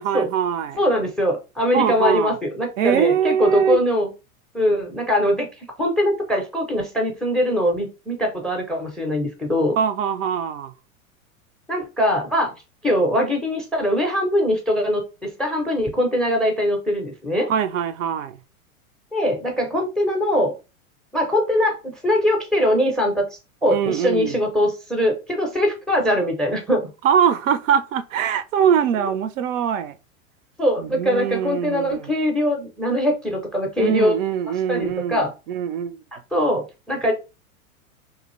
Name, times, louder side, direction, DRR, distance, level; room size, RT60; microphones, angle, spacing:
voice 1, 0.0-0.8 1.7-2.3 2.8-3.8 9.8-10.7 17.5-18.4 23.7-24.3 27.0-30.0 30.8-32.1 33.8-36.0, right 8 dB, 65° right, 0.5 m, -22 dB
voice 2, 0.8-4.1 4.5-5.5 5.8-9.7 11.7-12.5 12.8-17.5 19.1-20.5 21.1-26.9 30.6-34.2 34.7-35.3 36.3-37.1, equal, ahead, 0.4 m, -22 dB
2.7 x 2.4 x 3.0 m
hypercardioid pair, 100°, 42 cm